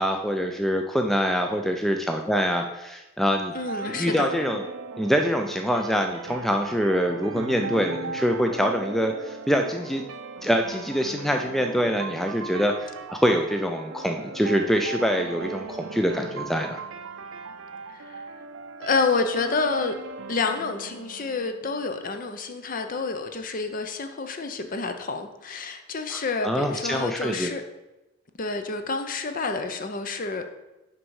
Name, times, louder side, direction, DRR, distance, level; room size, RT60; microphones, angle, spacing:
voice 1, 0.0-3.5 3.9-4.6 5.0-10.0 10.4-16.8 26.1-27.5, equal, ahead, 4 dB, 0.3 m, -25 dB
sound 1, 3.3-22.2, right 4 dB, 75° right, 0.5 m, -38 dB
voice 2, 3.5-4.3 17.9-18.3 18.8-19.9 20.3-27.6 28.4-30.4, left 4 dB, 40° left, 7 dB, 0.6 m, -28 dB
6.1 x 5.3 x 4.7 m, 0.99 s
head